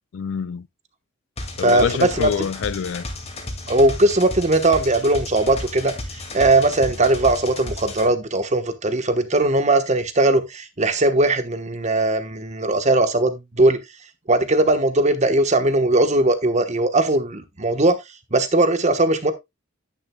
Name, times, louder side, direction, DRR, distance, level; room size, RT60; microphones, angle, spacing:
voice 1, 0.1-0.7 1.6-3.0, left 7 dB, 70° left, 0.4 m, -26 dB
sound 1, 1.4-8.1, left 1 dB, 30° left, 2.2 m, -33 dB
voice 2, 1.6-2.3 3.7-13.8 14.3-17.9 18.3-19.3, right 2 dB, 35° right, 1.2 m, -19 dB
10.0 x 9.2 x 2.3 m
head